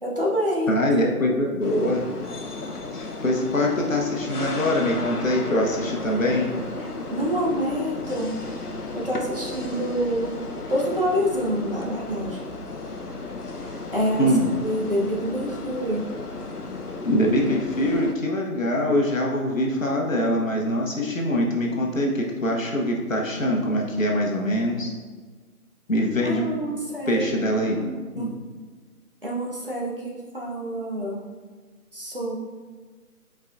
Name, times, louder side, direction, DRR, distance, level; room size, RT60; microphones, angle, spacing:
voice 1, 0.0-0.9 1.2-1.3 7.1-8.4 8.9-10.3 10.7-12.4 13.6-16.1 26.2-27.3 27.7-28.3 29.2-31.2 31.9-32.4, equal, 35° right, -3 dB, 0.9 m, -27 dB
voice 2, 0.7-2.1 2.9-6.5 14.2-14.5 17.0-24.9 25.9-26.4 27.1-27.8 28.1-28.3, left 1 dB, 60° left, -1 dB, 1.2 m, -23 dB
sound 1, 1.6-18.1, left 3 dB, 80° left, 0.9 m, -34 dB
8.1 x 4.8 x 2.6 m, 1.4 s
figure-of-eight pair, 170°, 45 cm